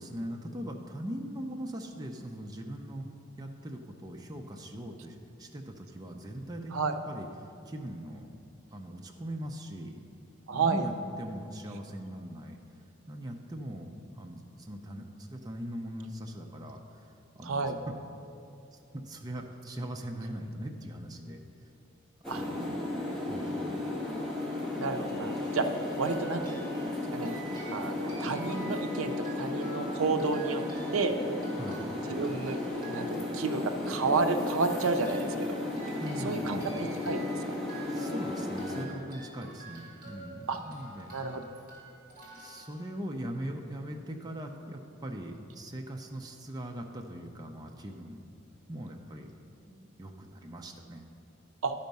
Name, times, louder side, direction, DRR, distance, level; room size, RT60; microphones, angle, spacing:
voice 1, 0.0-3.1 3.4-8.3 8.7-10.0 10.5-10.9 11.2-12.6 13.1-17.9 18.7-21.4 22.3-22.8 23.3-23.7 31.6-31.9 36.0-36.7 37.9-41.1 42.4-48.2 48.7-49.3 49.7-51.0, right 1 dB, 20° right, 2 dB, 0.5 m, -40 dB
voice 2, 10.5-10.8 17.4-17.8 22.3-22.4 24.7-26.6 27.1-27.3 27.7-30.6 30.9-31.1 32.1-32.6 32.9-35.6 36.2-37.6 40.5-40.6 41.1-41.4 51.6-51.7, right 4 dB, 75° right, 7 dB, 0.5 m, -31 dB
sound 1, 22.2-38.8, left 2 dB, 5° left, 1.3 m, -34 dB
sound 2, 26.0-43.4, right 3 dB, 40° right, 2.0 m, -49 dB
12.0 x 4.5 x 5.3 m, 2.6 s
head